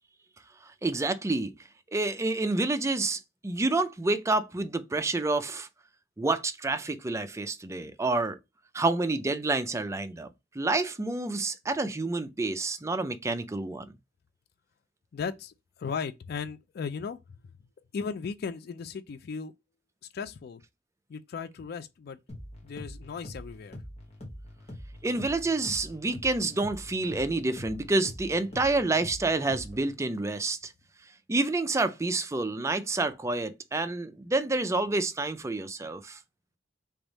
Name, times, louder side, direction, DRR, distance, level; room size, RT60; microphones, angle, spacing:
voice 1, 0.6-1.5 1.9-5.7 6.2-8.4 8.7-10.3 10.5-13.9 25.0-30.7 31.3-36.2, right 2 dB, 15° right, 0.4 m, -28 dB
voice 2, 15.1-17.2 17.9-19.5 20.1-20.6 21.1-22.2 22.6-23.8, left 5 dB, 55° left, 0.4 m, -36 dB
sound 1, 22.3-30.0, equal, 35° left, 1.1 m, -44 dB
3.4 x 3.4 x 4.0 m
head